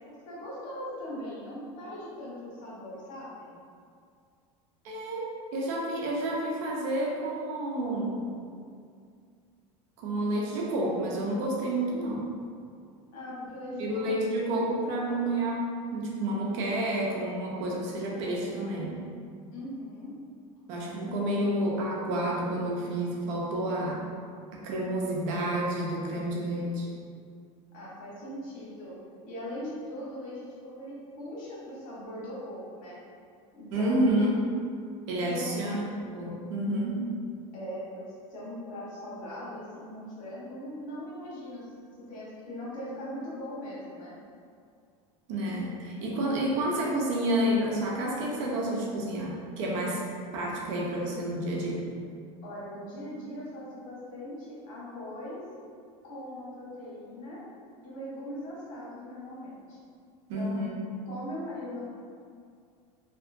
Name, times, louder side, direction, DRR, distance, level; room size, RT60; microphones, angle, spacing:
voice 1, 0.0-3.5 13.1-14.0 19.5-20.1 21.0-21.1 27.7-28.9 29.2-33.0 33.5-34.1 35.2-35.6 37.5-38.0 38.3-41.6 42.1-44.1 52.4-55.4 56.0-57.4 57.8-59.8 60.3-60.6 61.0-61.8, left 1 dB, 55° left, -8 dB, 1.3 m, -40 dB
voice 2, 4.8-5.3 5.5-8.3 10.0-12.3 13.8-19.0 20.7-24.1 24.5-26.9 33.7-34.3 35.1-35.8 36.1-37.1 45.3-50.0 50.3-51.9 60.3-60.8, right 1 dB, 70° right, -3 dB, 0.7 m, -29 dB
2.8 x 2.3 x 2.5 m, 2.3 s
supercardioid pair, 115°, 17 cm